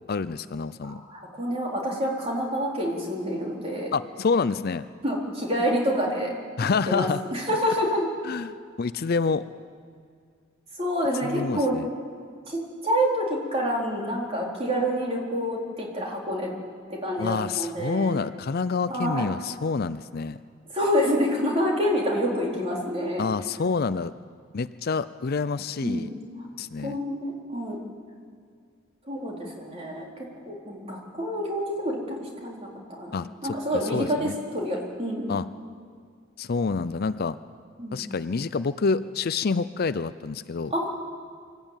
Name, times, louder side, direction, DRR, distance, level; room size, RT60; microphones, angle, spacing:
voice 1, 0.1-1.0 3.9-4.8 6.6-7.2 8.2-9.4 11.2-11.9 17.2-20.4 23.2-24.1 24.5-26.1 26.6-27.0 33.1-33.6 33.9-34.4 35.3-35.5 36.4-37.4 37.9-40.7, left 4 dB, 45° left, 13 dB, 0.5 m, -27 dB
voice 2, 0.8-3.9 5.0-6.3 6.9-8.1 10.8-11.7 12.5-16.5 16.9-18.2 18.9-19.3 20.7-23.2 25.8-26.2 26.8-27.8 29.1-30.0 30.5-32.7 33.0-35.3 37.8-38.0 40.7-40.9, equal, 30° right, -2 dB, 4.0 m, -27 dB
24.5 x 13.5 x 9.0 m, 2.2 s
head